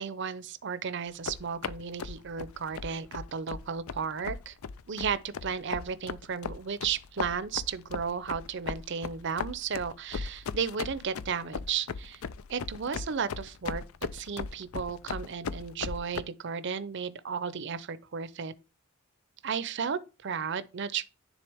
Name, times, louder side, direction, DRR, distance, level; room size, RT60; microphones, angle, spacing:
voice 1, 0.0-4.5 4.9-12.2 12.5-13.8 14.1-18.5 19.4-21.0, right 6 dB, 55° right, 0.6 m, -34 dB
sound 1, 1.1-16.2, left 5 dB, 80° left, 0.4 m, -38 dB
10.0 x 3.8 x 3.4 m
head